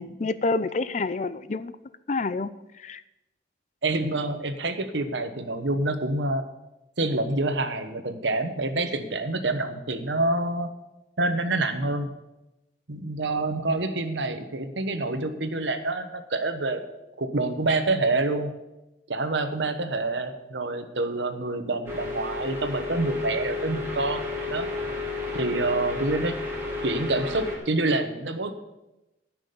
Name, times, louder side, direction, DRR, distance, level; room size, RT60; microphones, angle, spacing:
voice 1, 0.0-1.8 2.1-2.5 2.8-3.0, left 3 dB, 40° left, 15 dB, 0.5 m, -28 dB
voice 2, 3.8-6.4 7.0-10.7 11.2-12.1 12.9-16.8 17.2-18.5 19.1-24.2 24.5-24.7 25.3-26.4 26.8-28.5, right 2 dB, 85° right, 8 dB, 1.1 m, -27 dB
sound 1, 21.9-27.6, left 3 dB, 15° right, 2.7 m, -32 dB
13.0 x 6.2 x 6.8 m, 0.96 s
head